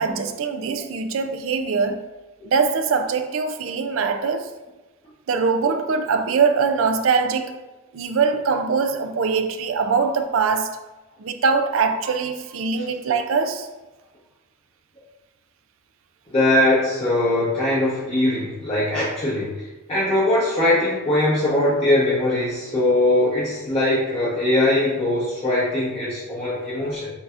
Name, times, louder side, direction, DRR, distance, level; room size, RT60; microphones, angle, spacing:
voice 1, 0.0-2.1 2.4-4.5 5.3-7.6 7.9-10.8 11.2-13.7, right 5 dB, 75° right, 0.4 m, -22 dB
voice 2, 16.3-27.1, left 1 dB, 30° left, 0.9 m, -21 dB
6.9 x 2.7 x 2.4 m
head